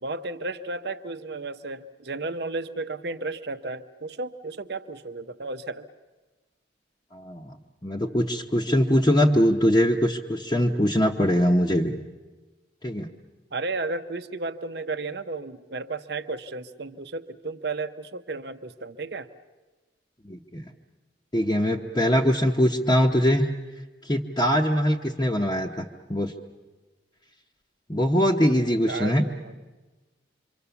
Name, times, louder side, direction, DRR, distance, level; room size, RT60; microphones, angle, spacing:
voice 1, 0.0-5.9 13.5-19.3 28.9-29.5, right 3 dB, 60° right, 10 dB, 0.9 m, -33 dB
voice 2, 7.1-7.6 7.8-12.0 12.8-13.1 20.2-20.6 21.3-23.5 24.0-25.8 26.1-26.3 27.9-29.3, equal, 20° left, -2 dB, 0.9 m, -22 dB
27.0 x 24.5 x 7.0 m, 1.2 s
head